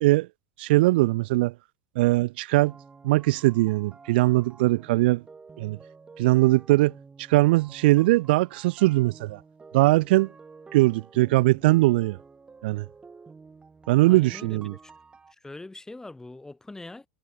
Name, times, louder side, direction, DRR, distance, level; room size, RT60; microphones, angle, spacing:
voice 1, 0.6-1.5 2.0-2.7 3.0-5.2 5.6-5.8 6.2-6.9 7.2-9.4 9.7-10.3 10.7-12.2 12.6-12.8 13.9-14.7, right 19 dB, 55° right, 0.7 m, -21 dB
sound 1, 2.6-15.3, right 4 dB, 15° right, 7.0 m, -50 dB
voice 2, 14.0-14.9 15.4-17.1, left 2 dB, 10° left, 4.6 m, -43 dB
figure-of-eight pair, 80°, 6 cm